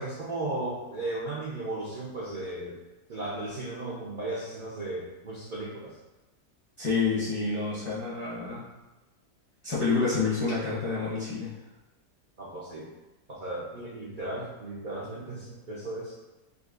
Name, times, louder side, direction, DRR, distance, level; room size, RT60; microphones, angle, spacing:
voice 1, 0.0-2.8 3.1-5.9 12.4-12.9 13.3-16.1, right 2 dB, 80° right, -6 dB, 0.4 m, -35 dB
voice 2, 6.8-8.7 9.6-11.5, left 4 dB, 35° left, -8 dB, 0.4 m, -28 dB
3.8 x 2.8 x 2.4 m, 1.1 s
omnidirectional pair, 1.7 m